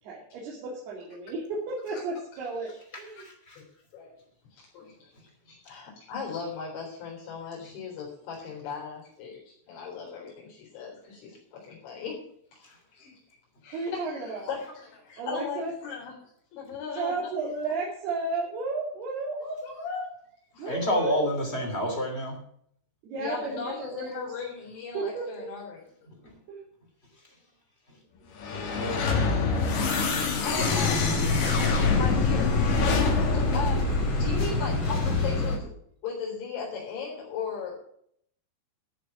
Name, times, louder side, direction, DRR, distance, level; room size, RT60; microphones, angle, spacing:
voice 1, 0.0-2.7 3.0-3.2 13.7-14.5 15.2-15.7 16.9-19.4 20.6-21.3 23.0-24.3 24.9-25.5 26.5-26.6, right 3 dB, 65° right, -4 dB, 4.2 m, -33 dB
voice 2, 2.9-3.6 20.7-22.4 26.1-26.3 28.7-29.0 29.3-29.4, equal, 20° left, 2 dB, 2.2 m, -29 dB
voice 3, 4.5-12.2 12.5-13.2 13.6-16.1 16.5-17.1 19.4-20.2 20.5-20.7 23.2-25.8 30.0-31.1 31.9-32.6 33.5-33.9 34.1-35.7 36.0-37.8, left 5 dB, 80° left, -3 dB, 6.2 m, -37 dB
sound 1, 28.3-34.6, left 4 dB, 65° left, 3.9 m, -27 dB
sound 2, 30.6-35.6, left 3 dB, 35° left, 2.6 m, -26 dB
13.5 x 6.8 x 7.2 m, 0.65 s
omnidirectional pair, 5.3 m